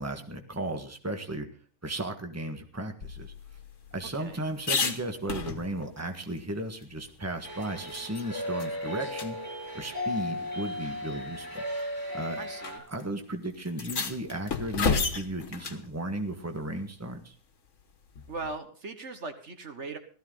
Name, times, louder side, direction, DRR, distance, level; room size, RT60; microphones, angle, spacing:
voice 1, 0.0-1.5 1.8-3.3 3.9-9.4 9.7-11.6 12.1-12.4 12.9-17.3, right 1 dB, 10° right, 5 dB, 1.6 m, -35 dB
sound 1, 3.0-6.0 6.4-6.5 6.8-8.3 8.6-8.7 9.1-9.3 10.3-10.4 11.3-11.6 12.6-12.7 13.0-13.1 13.7-15.9 18.1-18.6, left 5 dB, 70° left, 1.7 m, -33 dB
sound 2, 7.4-12.8, left 1 dB, 15° left, 8.0 m, -35 dB
voice 2, 12.4-12.8 18.3-20.0, right 3 dB, 60° right, 7 dB, 1.7 m, -39 dB
16.0 x 14.0 x 3.9 m, 0.41 s
omnidirectional pair, 1.3 m